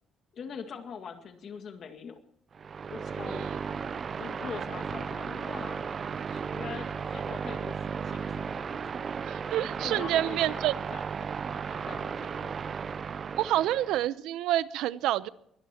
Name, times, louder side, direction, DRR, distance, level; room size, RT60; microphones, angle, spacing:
voice 1, 0.3-2.2 2.9-3.5 4.2-5.9 6.3-8.9 9.8-12.5, left 6 dB, 45° left, 6 dB, 2.1 m, -43 dB
sound 1, 2.5-14.1, right 6 dB, 30° right, 0.5 m, -35 dB
voice 2, 9.2-10.7 13.4-15.3, right 13 dB, 85° right, 16 dB, 0.7 m, -28 dB
23.0 x 17.5 x 3.0 m, 0.72 s
cardioid pair, 160°, 0 cm